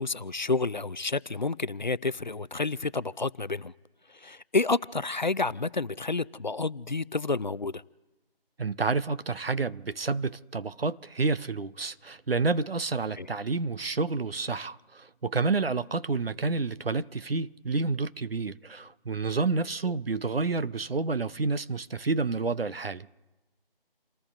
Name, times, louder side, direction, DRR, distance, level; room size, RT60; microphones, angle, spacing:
voice 1, 0.0-3.7 4.1-7.8 13.2-13.3, left 3 dB, 50° left, 0.4 m, -30 dB
voice 2, 8.6-23.1, right 3 dB, 75° right, 0.8 m, -29 dB
29.0 x 19.0 x 2.5 m
figure-of-eight pair, 165°, 30 cm